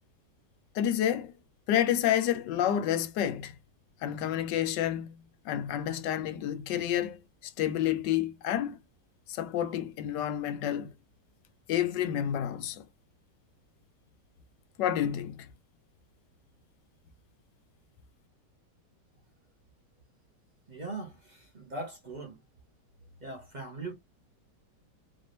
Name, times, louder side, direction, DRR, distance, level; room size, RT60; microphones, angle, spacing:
voice 1, 0.7-1.3 1.7-3.5 4.0-8.8 9.3-10.9 11.7-12.9 14.8-15.5, left 10 dB, 90° left, 1.3 m, -29 dB
voice 2, 20.7-22.4 23.2-23.9, right 2 dB, 30° right, 1.1 m, -40 dB
4.3 x 2.7 x 3.2 m
omnidirectional pair, 1.9 m